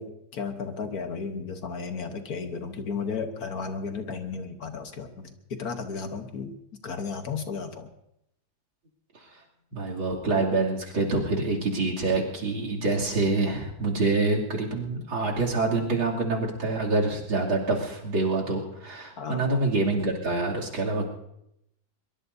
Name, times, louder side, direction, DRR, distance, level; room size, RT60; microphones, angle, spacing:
voice 1, 0.0-6.5 6.8-7.9 19.2-19.4, left 5 dB, 55° left, 7 dB, 1.5 m, -34 dB
voice 2, 9.7-21.1, right 3 dB, 80° right, -3 dB, 3.7 m, -26 dB
23.0 x 22.5 x 2.7 m, 0.79 s
omnidirectional pair, 2.1 m